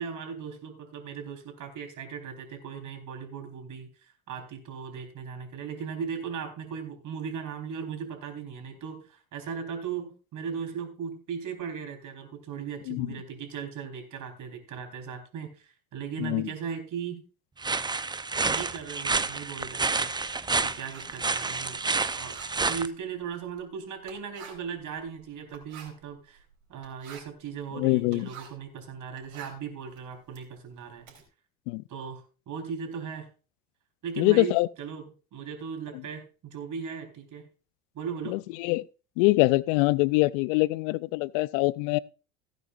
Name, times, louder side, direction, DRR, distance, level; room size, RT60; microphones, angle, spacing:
voice 1, 0.0-17.2 18.5-20.1 20.6-21.8 22.2-22.4 22.7-26.4 26.7-31.1 31.9-33.3 34.0-37.5 37.9-38.4, right 6 dB, 50° right, 4.1 m, -37 dB
voice 2, 16.2-16.5 27.7-28.3 31.7-31.8 34.2-34.7 38.3-38.9 39.2-42.0, left 22 dB, 65° left, 0.6 m, -24 dB
sound 1, 17.6-22.9, right 4 dB, 10° right, 0.7 m, -29 dB
Writing, 18.5-28.7 29.0-31.2, right 7 dB, 80° right, 4.0 m, -51 dB
16.5 x 9.3 x 2.5 m
hypercardioid pair, 80°, 41 cm